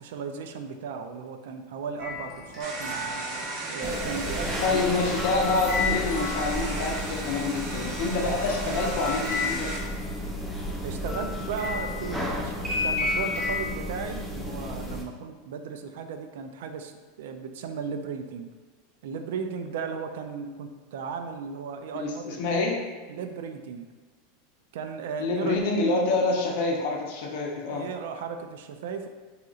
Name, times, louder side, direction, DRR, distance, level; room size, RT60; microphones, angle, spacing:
voice 1, 0.0-4.9 10.8-16.9 17.2-18.5 19.0-22.4 23.1-23.9 24.7-25.7 26.1-26.3 27.7-29.1, right 5 dB, 75° right, 6 dB, 0.3 m, -36 dB
sound 1, 2.0-7.0 8.2-13.7, left 4 dB, 20° right, 0.9 m, -33 dB
sound 2, 2.6-9.8, right 2 dB, 40° right, 0.6 m, -36 dB
sound 3, 3.8-15.0, equal, 5° left, 0.4 m, -34 dB
voice 2, 4.6-9.7 21.9-22.8 25.2-27.8, left 3 dB, 60° left, -1 dB, 0.5 m, -27 dB
3.8 x 2.8 x 2.3 m, 1.4 s
supercardioid pair, 160°, 0 cm